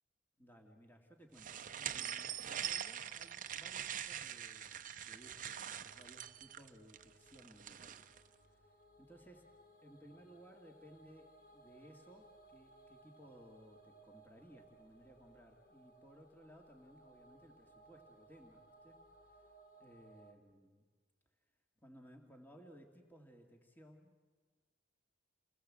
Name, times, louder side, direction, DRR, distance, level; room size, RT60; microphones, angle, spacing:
voice 1, 0.4-8.1 8.4-9.5 9.8-19.5 19.8-20.8 21.8-24.3, equal, 10° left, 3 dB, 2.2 m, -60 dB
sound 1, 1.4-8.2, right 10 dB, 45° right, 0.7 m, -44 dB
sound 2, 5.9-20.3, right 2 dB, 50° left, 1.7 m, -64 dB
28.5 x 20.0 x 7.6 m, 1.5 s
head